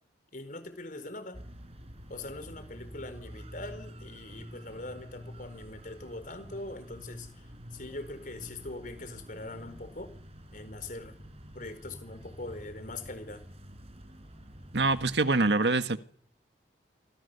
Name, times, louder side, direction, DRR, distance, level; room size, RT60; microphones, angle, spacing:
voice 1, 0.3-1.4 2.1-10.1 10.5-11.2 11.5-13.4, left 2 dB, 50° left, 11 dB, 4.6 m, -42 dB
sound 1, 1.3-15.2, equal, 35° right, 4.7 m, -48 dB
voice 2, 14.7-16.0, right 3 dB, 75° right, 10 dB, 1.6 m, -25 dB
28.5 x 25.0 x 7.0 m, 0.63 s
head